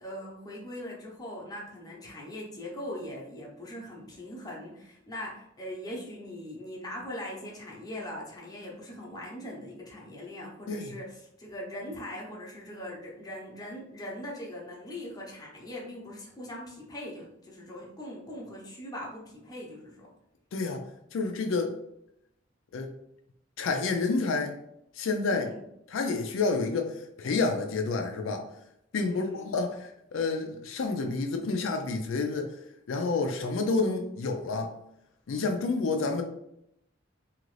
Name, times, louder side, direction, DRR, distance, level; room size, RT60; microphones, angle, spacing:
voice 1, 0.0-20.1 25.3-25.6 29.1-29.5, left 1 dB, 20° left, -3 dB, 0.8 m, -41 dB
voice 2, 20.5-20.8 21.1-21.7 22.7-22.9 23.6-24.5 25.0-25.5 25.9-28.5 28.9-32.5 32.9-34.7 35.3-36.2, left 3 dB, 80° left, 4 dB, 0.4 m, -29 dB
2.8 x 2.5 x 3.1 m, 0.78 s
head